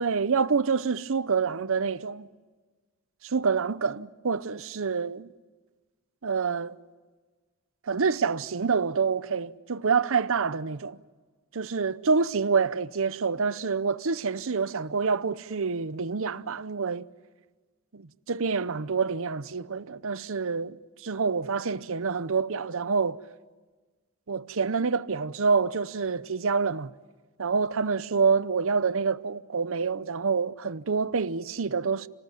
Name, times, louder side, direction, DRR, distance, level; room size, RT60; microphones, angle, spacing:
voice 1, 0.0-2.3 3.2-5.3 6.2-6.8 7.9-11.0 11.5-17.1 17.9-23.2 24.3-26.9 27.4-32.1, right 5 dB, 65° right, 0.8 m, -27 dB
28.5 x 19.5 x 9.3 m
head